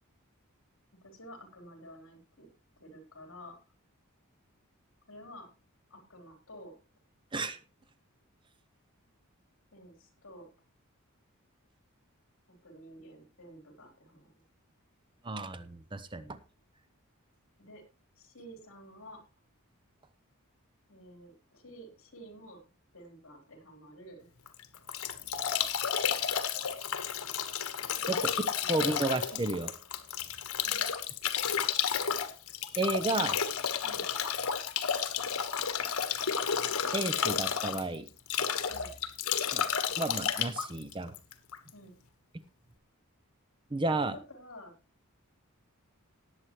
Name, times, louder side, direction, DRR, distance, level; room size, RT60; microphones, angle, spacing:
voice 1, 1.0-2.5 2.8-3.6 5.1-5.5 5.9-6.8 9.7-10.5 12.5-14.3 17.6-17.8 18.2-19.2 20.9-22.6 22.9-24.3 28.0-28.1 28.4-28.8 29.3-29.5 30.7-30.9 33.8-34.1 38.7-38.9 41.7-42.0 43.9-44.0 44.3-44.7, equal, 60° left, 4 dB, 3.9 m, -51 dB
voice 2, 15.2-16.4 28.1-29.7 32.8-33.4 36.9-38.1 39.5-39.7 40.0-41.1 43.7-44.2, right 2 dB, 20° right, 13 dB, 0.6 m, -32 dB
Bathtub (filling or washing) / Drip / Trickle dribble, 24.5-41.7, left 7 dB, 85° left, 1.3 m, -32 dB
19.0 x 8.1 x 3.1 m, 0.31 s
head